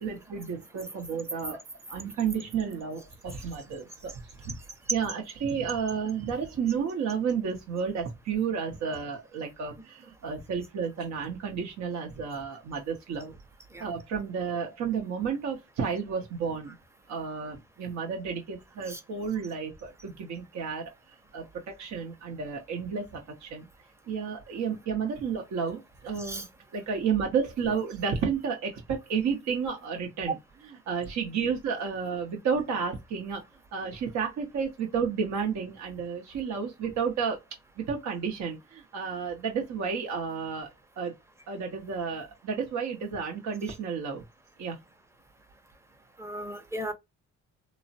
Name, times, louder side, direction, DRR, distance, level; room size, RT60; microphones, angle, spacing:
voice 1, 0.0-1.6 1.9-4.5 4.9-13.4 13.8-16.8 17.1-20.8 21.3-23.7 24.1-26.5 26.7-30.4 30.9-33.4 33.7-37.4 37.8-40.7 41.0-41.1 41.5-44.2 44.6-44.8, right 6 dB, 65° right, 0.8 m, -31 dB
voice 2, 46.2-46.9, equal, 10° right, 0.7 m, -36 dB
3.0 x 2.0 x 2.6 m
cardioid pair, 90°, 30 cm